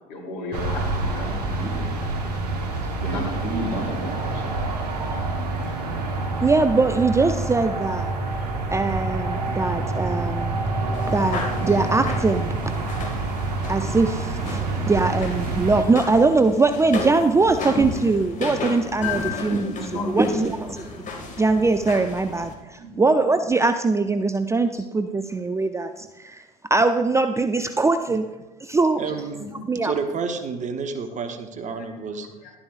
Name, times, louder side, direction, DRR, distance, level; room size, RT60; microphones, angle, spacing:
voice 1, 0.1-2.5 3.0-4.6 5.6-6.3 19.5-20.3 22.8-23.0 24.8-24.9 32.4-32.5, left 1 dB, 60° left, -1 dB, 3.2 m, -33 dB
sound 1, 0.5-15.8, right 2 dB, 80° right, 1.3 m, -27 dB
voice 2, 6.4-8.1 8.7-10.6 11.1-12.7 13.7-19.7 20.1-21.0 21.4-28.2 28.6-29.0 29.7-29.9, right 3 dB, 15° right, 9 dB, 0.5 m, -22 dB
sound 2, 10.9-22.5, left 3 dB, 40° left, 2.1 m, -34 dB
voice 3, 29.0-29.4 29.8-32.3, right 5 dB, 35° right, 7 dB, 1.1 m, -30 dB
12.0 x 11.5 x 2.5 m, 1.1 s
figure-of-eight pair, 65°, 20 cm